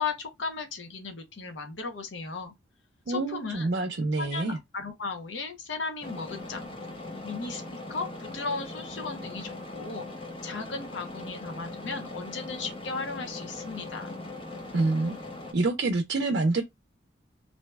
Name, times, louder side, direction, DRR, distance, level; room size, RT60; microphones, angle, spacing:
voice 1, 0.0-2.5 3.1-3.7 4.2-6.6 7.2-10.1 10.4-14.2, left 4 dB, 80° left, 0.7 m, -36 dB
voice 2, 3.1-4.6 14.7-15.1 15.5-16.6, right 3 dB, 65° right, 0.5 m, -26 dB
sound 1, 6.0-15.5, left 2 dB, 25° left, 0.5 m, -40 dB
2.6 x 2.1 x 3.3 m
head